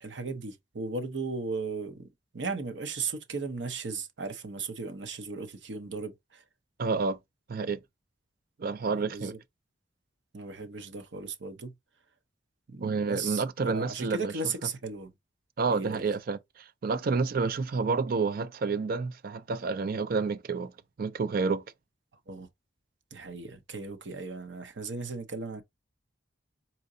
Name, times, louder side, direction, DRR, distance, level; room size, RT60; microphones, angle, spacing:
voice 1, 0.0-2.1 2.3-6.4 8.9-9.4 10.3-11.7 12.7-15.1 15.7-16.1 22.3-22.5 23.1-25.6, right 4 dB, 70° right, 0.8 m, -36 dB
voice 2, 6.8-7.2 7.5-7.8 8.6-9.3 12.8-14.3 15.6-20.7 21.0-21.6, right 4 dB, 55° right, 0.4 m, -29 dB
4.3 x 3.7 x 2.6 m
head